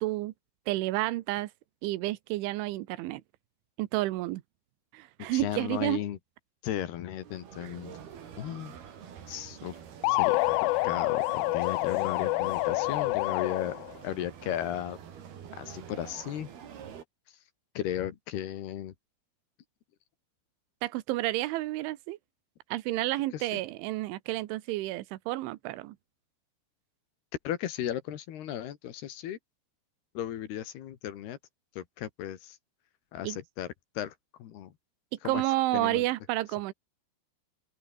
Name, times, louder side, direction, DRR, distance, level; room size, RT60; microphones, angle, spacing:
voice 1, 0.0-0.3 0.7-1.5 1.8-3.2 3.8-4.4 4.9-6.0 20.8-22.2 22.7-26.0 33.2-33.4 35.2-36.7, right 17 dB, 85° right, 3.4 m, -30 dB
voice 2, 5.3-6.2 6.6-7.9 8.4-8.8 9.3-9.8 10.1-13.8 14.0-15.0 15.6-16.5 17.8-18.9 23.3-23.6 27.5-29.4 30.2-31.4 31.8-32.6 33.1-33.7 34.0-34.2 34.4-34.7 35.2-35.4 35.7-36.0, left 11 dB, 65° left, 3.5 m, -35 dB
sound 1, 7.2-17.0, right 8 dB, 55° right, 4.7 m, -46 dB
sound 2, 10.0-13.9, left 23 dB, 90° left, 3.2 m, -27 dB
open air
omnidirectional pair, 5.5 m